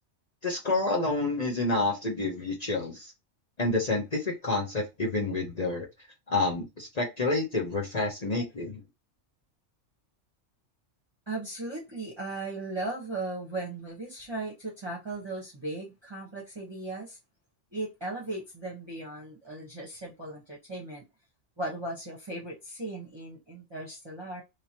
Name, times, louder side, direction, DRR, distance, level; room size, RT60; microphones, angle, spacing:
voice 1, 0.4-3.1 3.6-5.9 6.3-8.8, left 2 dB, 40° left, 0.8 m, -29 dB
voice 2, 11.3-17.2 17.7-21.0 21.6-24.4, right 2 dB, 25° right, 1.0 m, -37 dB
3.3 x 2.9 x 2.8 m
omnidirectional pair, 1.2 m